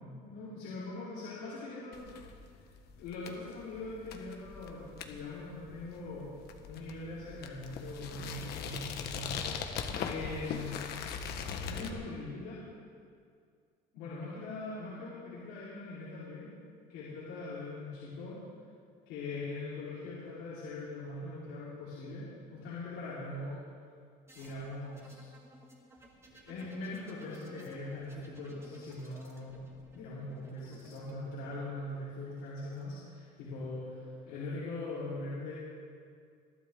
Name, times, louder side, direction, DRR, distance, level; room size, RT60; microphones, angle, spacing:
voice 1, 0.0-2.0 3.0-6.3 6.7-10.8 11.6-12.6 13.9-16.5 16.9-18.4 19.1-23.6 24.3-25.3 26.3-29.6 29.9-35.5, left 2 dB, 90° left, -10 dB, 4.5 m, -41 dB
sound 1, 1.9-11.9, left 6 dB, 65° left, 1.4 m, -41 dB
sound 2, 24.3-32.8 33.9-34.5, right 1 dB, 15° right, 2.2 m, -59 dB
21.5 x 12.0 x 3.9 m, 2.2 s
cardioid pair, 130°, 18 cm